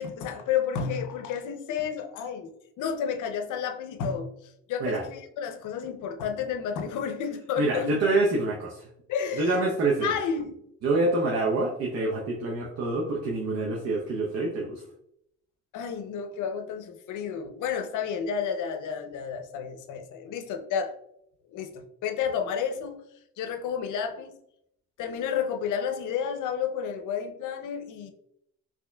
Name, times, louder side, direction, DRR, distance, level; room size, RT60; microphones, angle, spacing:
voice 1, 0.0-7.9 9.1-9.7 10.0-10.6 15.7-20.9 21.5-23.1 23.4-24.4 25.0-28.1, left 7 dB, 80° left, 0.6 m, -31 dB
voice 2, 7.6-8.9 9.4-10.1 10.8-14.8, right 2 dB, 60° right, 0.8 m, -26 dB
4.4 x 2.8 x 2.2 m
cardioid pair, 90°, 30 cm